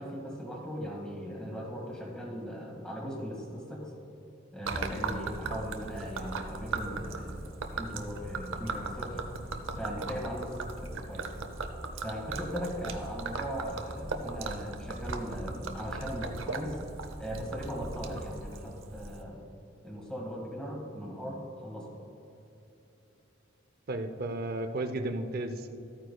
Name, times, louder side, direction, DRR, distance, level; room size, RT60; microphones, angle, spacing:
voice 1, 0.0-3.9 4.5-9.2 9.8-11.3 12.0-16.8 17.2-19.5 19.8-21.9, equal, 5° left, -2 dB, 1.8 m, -38 dB
Gurgling / Liquid, 4.6-19.2, right 3 dB, 85° right, 0.7 m, -38 dB
voice 2, 23.9-25.8, right 2 dB, 50° right, 9 dB, 0.6 m, -34 dB
13.5 x 9.1 x 2.3 m, 3.0 s
head